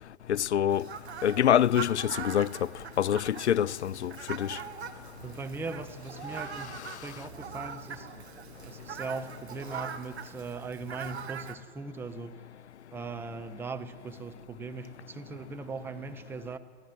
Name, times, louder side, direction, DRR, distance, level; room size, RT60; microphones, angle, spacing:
voice 1, 0.3-0.8 1.2-2.5 3.0-4.6, left 10 dB, 75° left, 0.5 m, -25 dB
Fowl, 0.7-11.5, right 7 dB, 70° right, 1.7 m, -42 dB
voice 2, 5.2-8.1 8.7-12.4 12.9-16.6, right 3 dB, 5° right, 0.7 m, -39 dB
24.0 x 17.0 x 7.7 m
figure-of-eight pair, 115°, 34 cm